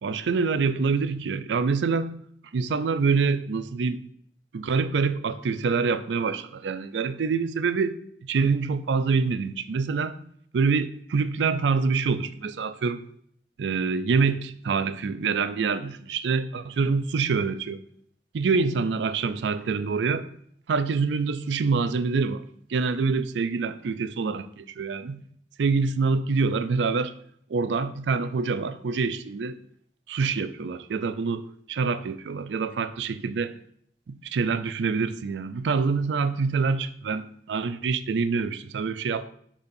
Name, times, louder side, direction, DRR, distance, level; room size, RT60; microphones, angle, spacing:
voice 1, 0.0-2.2 2.5-4.0 4.5-10.2 10.5-13.0 13.6-17.8 18.3-20.3 20.7-22.4 22.7-25.2 25.6-27.1 27.5-29.6 30.1-33.5 34.1-39.3, right 4 dB, 90° right, 0.4 m, -26 dB
10.5 x 4.2 x 2.6 m
head